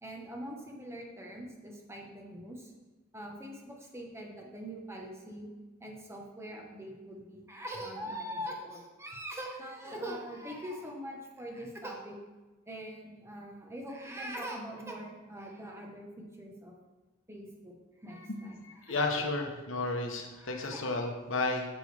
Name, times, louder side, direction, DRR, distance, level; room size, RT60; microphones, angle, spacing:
voice 1, 0.0-2.7 3.1-5.5 5.8-12.2 12.7-16.8 17.3-17.7 18.0-19.1 20.3-20.8, equal, 15° right, 0 dB, 1.1 m, -43 dB
voice 2, 18.6-21.7, left 3 dB, 80° left, 3 dB, 1.1 m, -32 dB
8.4 x 6.8 x 3.4 m, 1.2 s
head